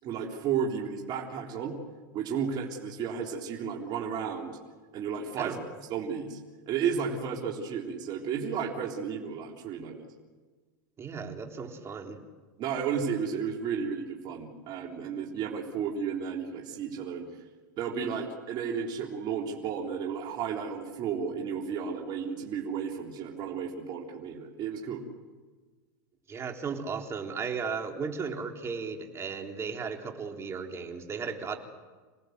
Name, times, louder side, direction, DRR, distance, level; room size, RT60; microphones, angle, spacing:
voice 1, 0.0-1.8 2.1-4.6 4.9-5.6 5.9-6.4 6.7-10.1 12.6-17.3 17.8-25.0, right 7 dB, 45° right, -1 dB, 3.6 m, -33 dB
voice 2, 11.0-12.2 26.3-31.6, right 5 dB, 25° right, 3 dB, 3.6 m, -35 dB
27.5 x 18.5 x 8.0 m, 1.4 s
supercardioid pair, 115°, 11 cm